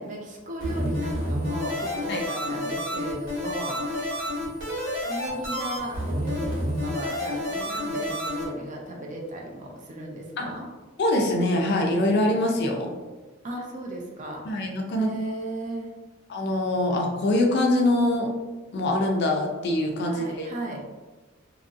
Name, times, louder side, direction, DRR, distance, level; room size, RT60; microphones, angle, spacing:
voice 1, 0.0-3.9 5.1-10.7 13.4-14.6 14.9-15.9 20.1-20.9, right 1 dB, 35° right, -1 dB, 0.5 m, -36 dB
sound 1, 0.6-8.4, equal, 60° right, 1.2 m, -29 dB
voice 2, 11.0-13.0 14.5-15.1 16.3-18.3 18.7-20.5, left 1 dB, 50° left, 1 dB, 0.4 m, -24 dB
2.9 x 2.5 x 2.5 m, 1.2 s
head